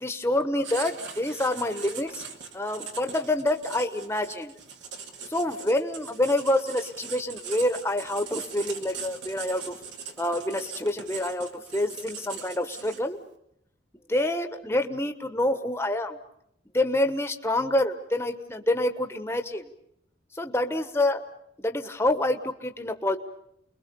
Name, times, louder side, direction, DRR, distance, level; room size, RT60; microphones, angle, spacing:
voice 1, 0.0-2.2 2.5-4.5 5.3-9.8 10.2-13.2 14.1-16.2 16.7-19.7 20.3-21.2 21.6-23.2, left 1 dB, 15° left, 7 dB, 1.2 m, -27 dB
Writing, 0.6-13.2, right 6 dB, 75° right, 2.5 m, -41 dB
30.0 x 22.0 x 7.0 m, 0.74 s
head